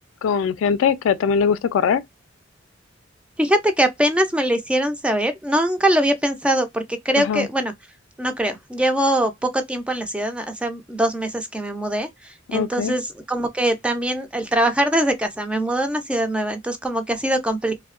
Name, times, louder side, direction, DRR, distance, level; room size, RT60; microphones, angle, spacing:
voice 1, 0.2-2.0 7.2-7.5 12.5-12.9, left 6 dB, 80° left, 0.3 m, -21 dB
voice 2, 3.4-7.7 8.2-17.8, right 1 dB, 5° right, 0.3 m, -22 dB
2.6 x 2.1 x 2.3 m
head